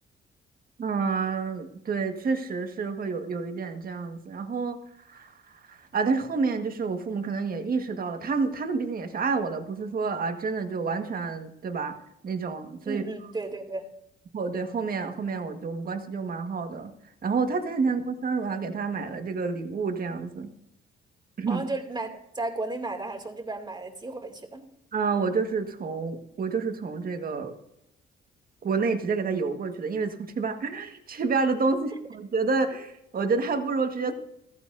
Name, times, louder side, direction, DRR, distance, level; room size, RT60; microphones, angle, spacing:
voice 1, 0.8-4.8 5.0-11.9 12.2-13.0 14.3-16.9 17.2-20.5 21.4-21.6 24.9-27.5 28.6-34.1, right 4 dB, 45° right, 6 dB, 1.6 m, -29 dB
voice 2, 12.9-13.9 21.5-24.6, right 2 dB, 20° right, 4 dB, 2.5 m, -34 dB
15.0 x 14.5 x 2.6 m, 0.79 s
cardioid pair, 90°, 20 cm